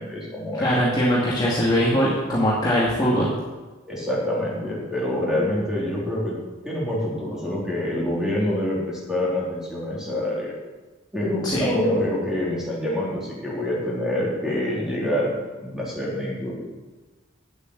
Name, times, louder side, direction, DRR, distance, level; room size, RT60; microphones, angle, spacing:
voice 1, 0.0-0.8 3.9-6.4 6.6-10.5 11.1-16.5, left 1 dB, 5° right, -6 dB, 3.5 m, -26 dB
voice 2, 0.6-3.3 11.4-11.7, equal, 20° left, -7 dB, 2.1 m, -21 dB
9.5 x 8.1 x 8.0 m, 1.2 s
head